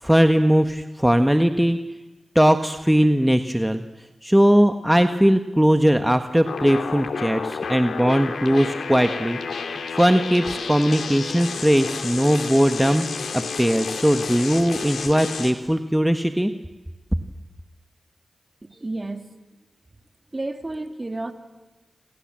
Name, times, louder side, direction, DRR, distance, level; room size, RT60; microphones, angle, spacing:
voice 1, 0.0-1.8 2.3-3.8 4.2-9.4 9.9-13.0 13.3-16.5, equal, 5° right, 7 dB, 1.6 m, -19 dB
sound 1, 6.4-15.5, left 5 dB, 85° left, 2.8 m, -31 dB
voice 2, 18.6-19.3 20.3-21.3, right 2 dB, 35° right, 6 dB, 3.2 m, -31 dB
27.5 x 27.5 x 7.7 m, 1.2 s
cardioid pair, 40°, 0 cm